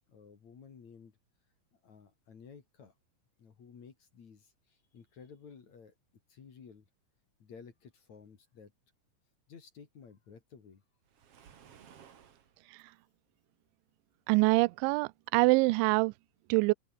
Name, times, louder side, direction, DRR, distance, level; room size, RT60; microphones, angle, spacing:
voice 1, 0.1-1.2 1.7-2.9 3.4-6.0 6.3-6.9 7.4-8.7 9.5-10.8, left 6 dB, 45° left, 3.4 m, -54 dB
Waves surf, 11.1-12.6, right 8 dB, 50° right, 1.8 m, -57 dB
voice 2, 14.3-16.1 16.5-16.7, right 27 dB, 85° right, 2.8 m, -25 dB
open air
omnidirectional pair, 5.4 m